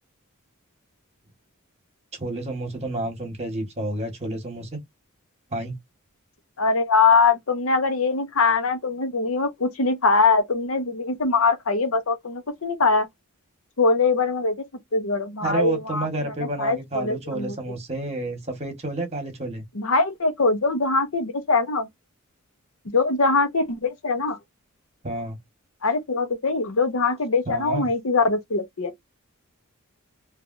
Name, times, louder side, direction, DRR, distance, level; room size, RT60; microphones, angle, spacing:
voice 1, 2.1-4.8 5.5-5.7 15.4-19.6 25.0-25.4 27.5-27.9, right 2 dB, 30° right, 1.1 m, -30 dB
voice 2, 6.6-13.1 13.8-14.6 14.9-16.0 16.6-17.5 19.8-21.9 22.9-24.4 25.8-28.9, left 4 dB, 65° left, 0.8 m, -22 dB
3.1 x 2.5 x 2.5 m
head